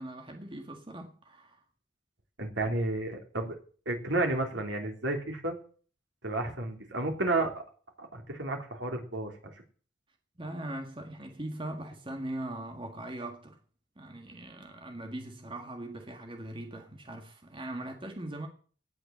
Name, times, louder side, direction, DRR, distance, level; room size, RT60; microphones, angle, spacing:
voice 1, 0.0-1.6 10.4-13.6 14.0-18.5, right 1 dB, 25° right, 1.8 m, -40 dB
voice 2, 2.4-3.6 3.8-5.6 6.2-7.5 8.0-9.3, right 2 dB, 75° right, 3.4 m, -31 dB
17.5 x 6.9 x 7.5 m
head